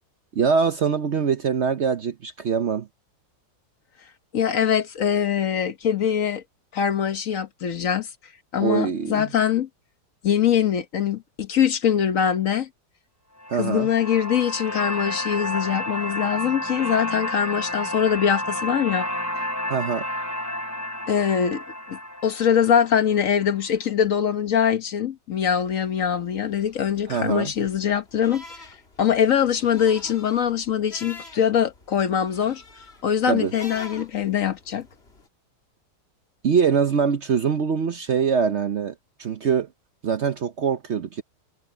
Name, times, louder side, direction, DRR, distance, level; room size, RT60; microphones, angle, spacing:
voice 1, 0.3-2.9 8.6-9.3 13.5-13.9 19.7-20.1 27.1-27.5 33.3-33.5 36.4-38.9 39.2-39.7 40.0-41.2, right 6 dB, 55° right, 0.9 m, -23 dB
voice 2, 4.3-6.4 6.7-8.1 8.5-9.7 10.2-12.7 13.5-19.1 21.1-21.6 21.9-28.6 29.0-32.6 33.0-34.9, left 8 dB, 55° left, 1.3 m, -23 dB
sound 1, 13.4-23.5, left 1 dB, 10° left, 3.1 m, -31 dB
sound 2, 25.5-35.3, left 2 dB, 35° left, 2.4 m, -47 dB
omnidirectional pair, 1.8 m